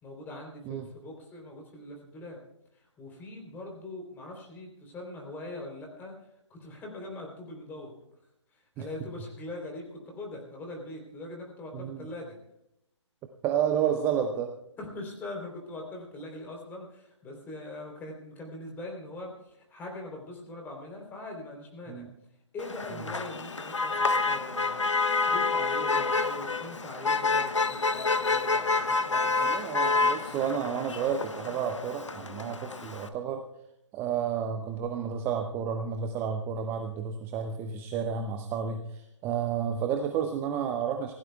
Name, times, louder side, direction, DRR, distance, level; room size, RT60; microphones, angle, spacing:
voice 1, 0.0-2.4 2.7-8.0 8.5-12.4 14.8-22.1 22.5-29.6, left 2 dB, 10° left, 1 dB, 3.4 m, -42 dB
voice 2, 11.7-12.1 13.4-14.5 21.9-22.1 29.4-33.4 33.9-41.1, right 8 dB, 15° right, 6 dB, 0.6 m, -31 dB
Motor vehicle (road), 22.6-33.1, left 3 dB, 80° left, 1.3 m, -28 dB
24.5 x 16.5 x 2.3 m, 0.82 s
figure-of-eight pair, 140°, 16 cm